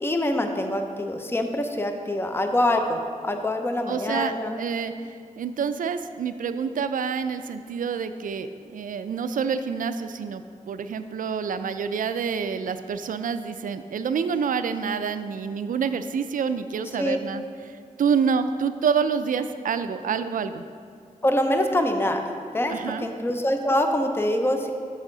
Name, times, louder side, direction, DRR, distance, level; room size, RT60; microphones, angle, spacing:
voice 1, 0.0-4.6 17.0-17.2 21.2-22.2 22.5-24.7, left 1 dB, 15° left, 5 dB, 0.6 m, -25 dB
voice 2, 3.9-4.9 5.4-20.6 22.7-23.1, right 6 dB, 75° right, 11 dB, 0.4 m, -27 dB
8.1 x 6.3 x 3.8 m, 2.3 s
cardioid pair, 75°, 14 cm